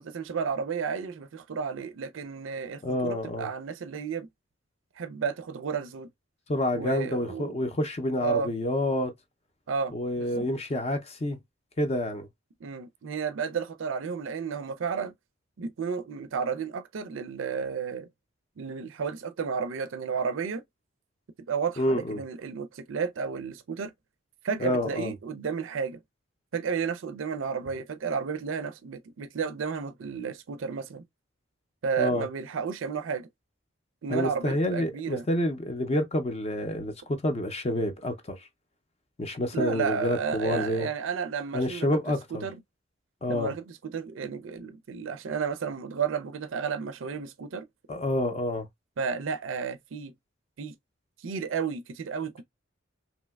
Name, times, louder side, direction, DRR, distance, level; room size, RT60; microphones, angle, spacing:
voice 1, 0.0-4.3 5.0-6.1 6.7-7.5 8.2-8.5 9.7-10.5 12.6-15.1 15.6-18.1 18.6-20.6 21.5-23.9 24.4-26.0 26.5-31.0 31.8-33.3 34.0-35.3 39.5-41.9 42.3-42.6 43.3-47.7 49.0-50.1 50.6-50.7 51.2-52.4, right 6 dB, 75° right, 0.4 m, -32 dB
voice 2, 2.8-3.5 6.5-9.1 9.9-11.4 11.8-12.3 21.8-22.2 24.6-25.1 32.0-32.3 34.1-38.5 39.2-40.9 41.5-42.5 43.2-43.5 47.9-48.7, left 1 dB, 30° left, 0.5 m, -28 dB
3.2 x 2.8 x 2.2 m
head